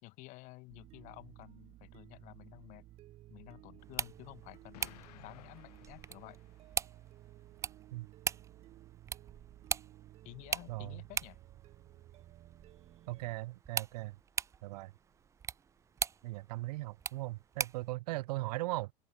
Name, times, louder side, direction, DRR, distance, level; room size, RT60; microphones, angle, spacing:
voice 1, 0.0-2.8 3.3-6.4 10.2-11.4, left 23 dB, 40° left, 2.5 m, -52 dB
sound 1, 0.7-13.3, right 15 dB, 30° right, 4.8 m, -56 dB
sound 2, 3.8-17.9, right 7 dB, 15° right, 1.4 m, -42 dB
Explosion, 4.7-6.9, left 18 dB, 80° left, 6.7 m, -57 dB
voice 2, 10.7-11.0 13.1-14.2 14.6-14.9 16.2-18.9, right 20 dB, 80° right, 0.6 m, -38 dB
open air
supercardioid pair, 175°, 20 cm